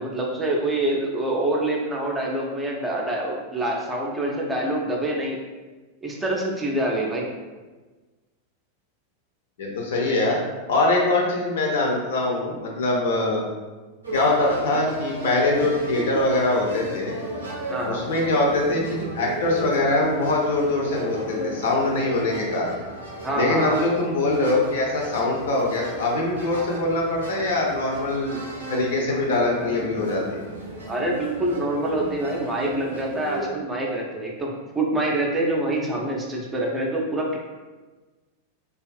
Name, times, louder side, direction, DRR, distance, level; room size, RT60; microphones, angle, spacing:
voice 1, 0.0-5.4 6.0-7.3 17.7-18.1 23.2-23.9 30.9-34.5 34.7-37.4, right 1 dB, 15° right, -2 dB, 0.4 m, -26 dB
voice 2, 9.6-10.4 10.7-13.4 14.1-17.1 17.9-22.8 23.3-28.4 28.7-30.2, left 2 dB, 60° left, -1 dB, 0.5 m, -23 dB
sound 1, 14.0-33.4, right 1 dB, 75° right, 0.5 m, -35 dB
2.5 x 2.3 x 2.4 m, 1.3 s
figure-of-eight pair, 90°, 0 cm